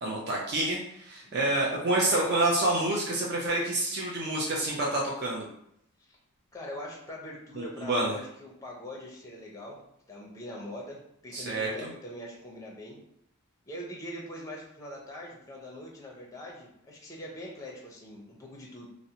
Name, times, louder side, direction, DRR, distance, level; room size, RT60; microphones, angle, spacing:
voice 1, 0.0-5.5 7.6-8.1 11.3-11.9, right 2 dB, 50° right, -3 dB, 0.4 m, -28 dB
voice 2, 1.2-1.6 6.0-6.2 6.5-9.8 10.1-13.0 13.7-18.9, left 1 dB, 15° left, -2 dB, 0.5 m, -42 dB
2.5 x 2.0 x 2.7 m, 0.74 s
head